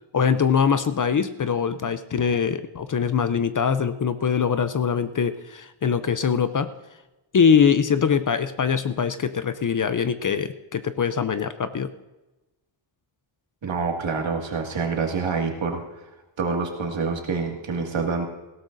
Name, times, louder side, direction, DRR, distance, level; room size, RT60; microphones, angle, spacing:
voice 1, 0.1-6.7 7.3-11.9, left 6 dB, 40° left, 11 dB, 0.5 m, -22 dB
voice 2, 13.6-16.0 16.4-18.2, right 4 dB, 65° right, 1 dB, 2.1 m, -27 dB
18.5 x 17.0 x 2.6 m, 1.0 s
wide cardioid pair, 150°, 49 cm